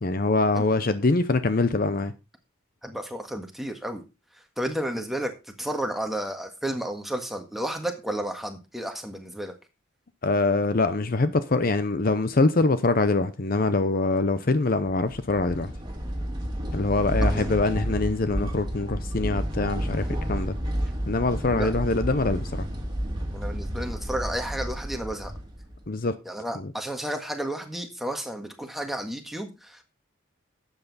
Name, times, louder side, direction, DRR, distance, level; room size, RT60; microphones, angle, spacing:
voice 1, 0.0-2.1 10.2-15.7 16.7-20.5 21.1-22.6 25.9-26.1, left 3 dB, 45° left, 0.7 m, -24 dB
voice 2, 2.8-4.0 4.6-5.3 5.6-9.5 17.2-17.5 21.5-21.7 23.3-25.3 26.2-29.8, right 1 dB, ahead, 1.6 m, -32 dB
sound 1, 14.8-25.9, equal, 20° right, 2.4 m, -31 dB
12.0 x 8.2 x 4.1 m
head